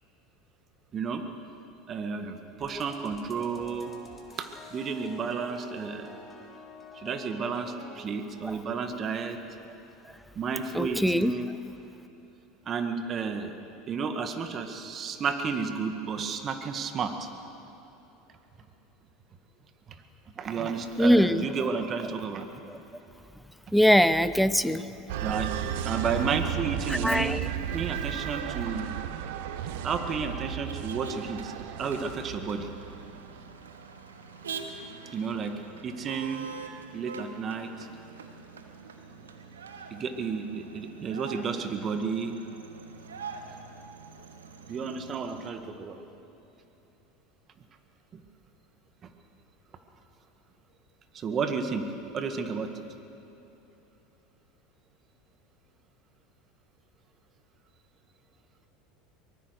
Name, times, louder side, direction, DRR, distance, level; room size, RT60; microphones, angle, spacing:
voice 1, 0.9-1.2 1.9-3.9 4.4-6.1 7.0-9.4 10.4-11.5 12.7-13.5 13.9-17.3 20.4-22.5 25.2-25.6 25.8-27.3 27.7-28.9 29.8-31.5 31.8-32.7 35.1-36.5 36.9-37.7 39.9-42.3 44.7-46.0 48.1-48.2 51.1-52.7, right 5 dB, 40° right, 7 dB, 2.0 m, -32 dB
sound 1, 2.6-8.0, left 3 dB, 15° left, 3.6 m, -47 dB
voice 2, 10.7-11.3 21.0-21.5 22.0-22.2 22.7-22.8 23.7-24.9 26.9-27.5, equal, ahead, 14 dB, 0.8 m, -22 dB
sound 2, 25.1-33.3, right 10 dB, 70° right, 1.2 m, -34 dB
Motor vehicle (road), 26.3-45.5, right 5 dB, 90° right, 1.8 m, -45 dB
23.5 x 21.0 x 6.6 m, 3.0 s
hypercardioid pair, 85°, 0 cm